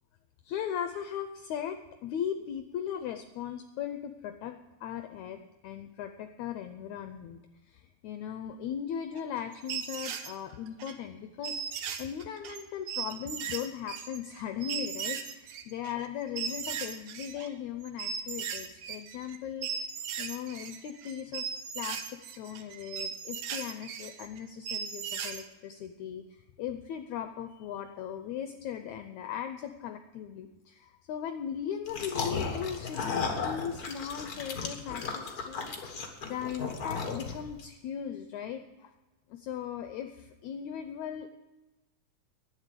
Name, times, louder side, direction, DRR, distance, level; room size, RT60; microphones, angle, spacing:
voice 1, 0.4-19.9 20.2-21.5 21.8-38.9 39.3-41.3, left 9 dB, 75° left, 7 dB, 1.8 m, -38 dB
sound 1, 9.2-10.9 11.4-17.5 17.8-19.4 19.6-25.4, right 7 dB, 70° right, 2.1 m, -37 dB
sound 2, 31.9-37.6, left 5 dB, 45° left, 1.2 m, -35 dB
11.0 x 9.7 x 6.7 m, 1.1 s
omnidirectional pair, 3.8 m